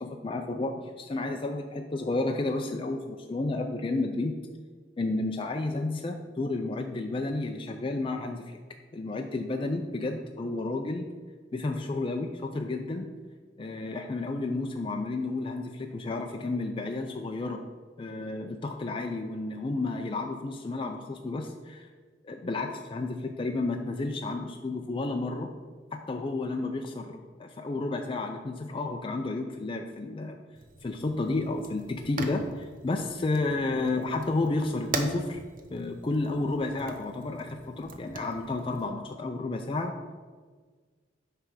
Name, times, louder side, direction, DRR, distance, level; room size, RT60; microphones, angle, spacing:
voice 1, 0.0-4.3 5.0-8.6 8.9-11.1 11.5-13.1 13.6-17.6 18.0-21.9 22.2-25.5 25.9-30.4 30.8-35.4 35.7-39.9, left 2 dB, 30° left, 3 dB, 0.4 m, -31 dB
Fire, 30.5-38.9, right 3 dB, 50° right, 0.7 m, -41 dB
9.2 x 3.4 x 6.2 m, 1.5 s
head